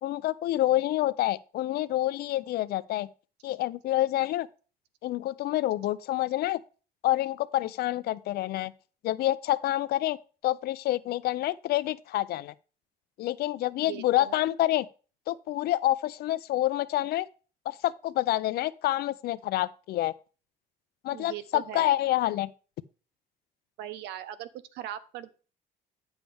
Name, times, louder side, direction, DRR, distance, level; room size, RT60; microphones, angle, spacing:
voice 1, 0.0-3.1 3.4-4.5 5.0-6.6 7.0-8.7 9.0-10.2 10.4-12.5 13.2-14.9 15.3-17.3 17.7-20.1 21.0-22.5, left 15 dB, 70° left, 0.5 m, -27 dB
voice 2, 13.8-14.5 21.1-22.0 23.8-25.3, right 12 dB, 90° right, 0.8 m, -40 dB
9.0 x 7.2 x 3.5 m
cardioid pair, 110°, 17 cm